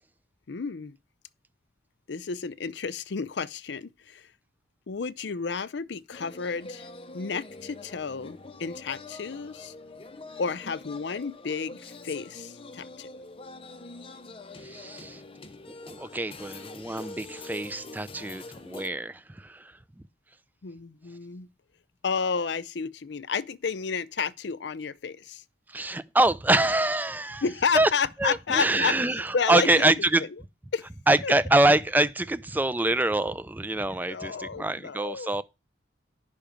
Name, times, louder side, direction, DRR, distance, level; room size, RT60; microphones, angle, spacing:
voice 1, 0.5-1.0 2.1-4.3 4.9-6.9 7.1-9.7 10.4-13.1 20.6-21.5 22.0-25.4 27.4-29.0 29.3-29.9 30.2-30.3 30.7-30.9 31.2-31.3 34.1-35.3, left 5 dB, 65° left, 0.5 m, -31 dB
sound 1, 6.1-18.9, left 2 dB, 30° left, 0.8 m, -44 dB
voice 2, 14.6-15.2 15.9-19.7 25.7-27.4 27.7-27.9 28.2-30.3 31.1-35.4, right 2 dB, 10° right, 0.5 m, -25 dB
10.5 x 5.8 x 5.1 m
head